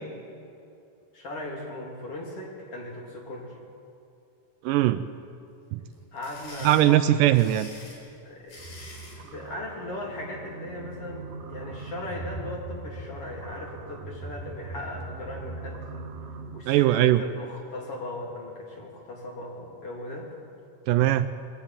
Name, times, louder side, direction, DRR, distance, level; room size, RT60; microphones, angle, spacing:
voice 1, 1.1-3.6 6.1-7.3 8.2-8.6 9.2-16.1 16.5-20.4, left 1 dB, 45° left, -2 dB, 3.6 m, -38 dB
voice 2, 4.6-5.0 5.7-5.8 6.6-7.7 16.7-17.2 20.9-21.3, right 13 dB, 80° right, 11 dB, 2.1 m, -20 dB
sound 1, 5.9-9.2, left 2 dB, 75° left, 6.3 m, -46 dB
sound 2, 8.6-16.6, right 3 dB, 60° right, 2.1 m, -40 dB
22.5 x 14.0 x 8.8 m, 2.7 s
omnidirectional pair, 4.0 m